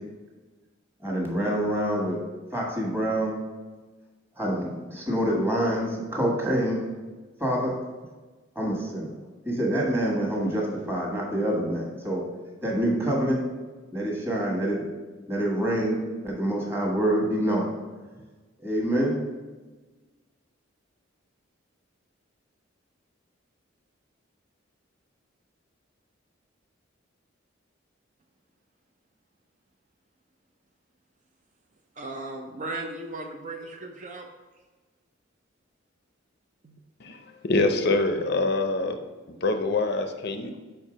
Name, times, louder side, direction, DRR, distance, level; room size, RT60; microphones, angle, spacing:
voice 1, 1.0-2.2 2.5-3.4 4.4-6.8 7.4-7.8 8.5-9.1 9.5-12.2 12.6-13.4 13.9-14.9 15.3-17.7 18.6-19.2, right 1 dB, 10° right, -2 dB, 1.4 m, -26 dB
voice 2, 32.0-34.3 36.6-36.8, right 2 dB, 40° right, 3 dB, 0.4 m, -36 dB
voice 3, 37.0-39.0 39.4-40.6, left 2 dB, 55° left, 6 dB, 0.5 m, -25 dB
5.3 x 4.5 x 5.0 m, 1.3 s
head